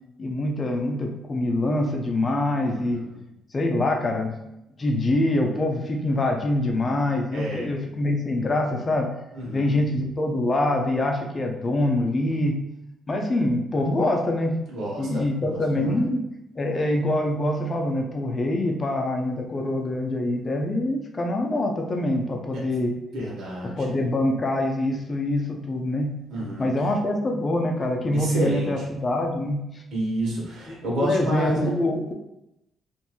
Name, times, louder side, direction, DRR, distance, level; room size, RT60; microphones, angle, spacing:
voice 1, 0.2-3.0 3.5-4.4 4.8-9.1 9.5-12.6 13.1-14.5 15.0-16.2 16.6-22.9 23.8-26.1 26.6-29.6 30.7-30.8 31.0-32.1, left 1 dB, 35° left, 2 dB, 0.5 m, -25 dB
voice 2, 2.6-3.2 7.3-7.7 9.3-9.7 14.7-15.2 15.7-16.0 23.1-23.9 26.3-26.7 28.1-28.8 29.9-31.7, equal, 80° right, -4 dB, 1.0 m, -29 dB
2.9 x 2.6 x 2.3 m, 0.86 s
cardioid pair, 90°, 0 cm